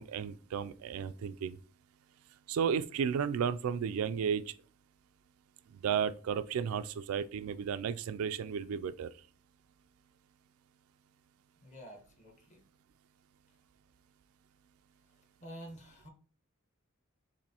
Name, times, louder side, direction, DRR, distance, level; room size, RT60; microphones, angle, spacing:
voice 1, 0.0-1.6 2.5-4.4 5.7-9.1, right 7 dB, 90° right, 0.3 m, -33 dB
voice 2, 11.6-12.6 15.4-16.1, equal, 35° left, 1.1 m, -49 dB
7.0 x 2.6 x 2.8 m
head